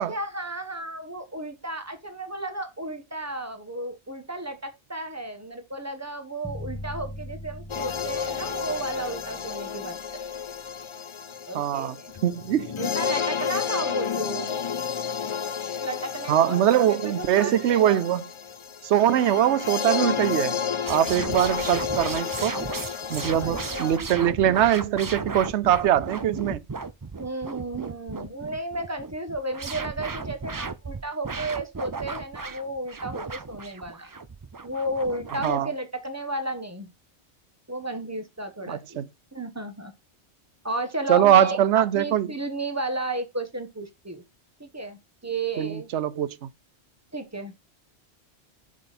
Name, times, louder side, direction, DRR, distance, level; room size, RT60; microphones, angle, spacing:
voice 1, 0.0-10.3 11.5-12.1 12.8-14.6 15.8-18.0 23.3-24.1 27.2-34.1 34.6-36.9 37.7-39.0 39.3-39.9 40.6-44.2 44.6-45.9 47.1-47.5, right 1 dB, 15° right, 1.3 m, -33 dB
sound 1, 6.4-10.5, left 1 dB, 5° left, 1.4 m, -40 dB
sound 2, 7.7-24.0, left 7 dB, 45° left, 0.4 m, -31 dB
voice 2, 11.5-12.0 12.2-12.7 16.3-18.3 18.8-20.6 20.9-22.6 23.1-26.6 35.4-35.7 38.7-39.1 41.1-42.3 45.6-46.5, right 11 dB, 80° right, 0.9 m, -22 dB
sound 3, 20.9-35.6, right 4 dB, 35° right, 0.3 m, -35 dB
7.1 x 6.6 x 4.2 m
omnidirectional pair, 1.2 m